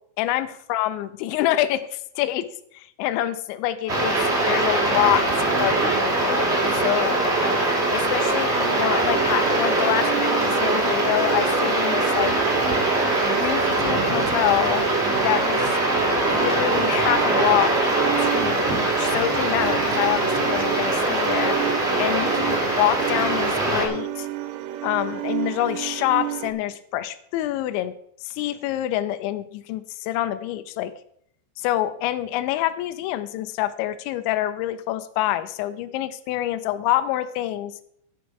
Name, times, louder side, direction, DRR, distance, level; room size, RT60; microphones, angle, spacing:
voice 1, 0.2-2.5 2.7-4.1 4.4-5.2 5.6-7.2 7.9-12.4 13.3-14.9 15.2-15.6 16.3-17.7 18.2-21.6 22.0-24.3 24.8-27.9 28.2-30.9 31.6-37.7, left 14 dB, 85° left, 11 dB, 3.0 m, -26 dB
sound 1, 3.9-23.9, right 2 dB, 35° right, 1.0 m, -22 dB
sound 2, 9.1-26.5, right 12 dB, 80° right, 2.9 m, -31 dB
13.5 x 5.3 x 5.9 m, 0.69 s
omnidirectional pair, 5.3 m